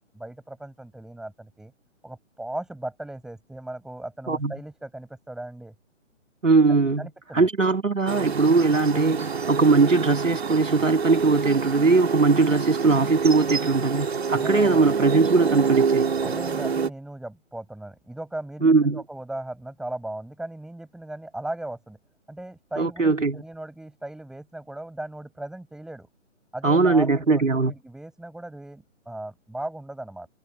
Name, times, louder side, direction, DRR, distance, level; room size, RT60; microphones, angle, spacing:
voice 1, 0.1-1.7 2.0-5.7 7.0-7.5 14.3-14.8 16.2-22.0 22.3-26.1 26.5-30.3, right 1 dB, ahead, 7.3 m, -37 dB
voice 2, 6.4-7.1 7.3-16.1 18.6-19.0 22.8-23.4 26.6-27.7, right 3 dB, 75° right, 2.3 m, -20 dB
sound 1, 8.1-16.9, right 5 dB, 55° right, 3.4 m, -27 dB
figure-of-eight pair, 140°, 38 cm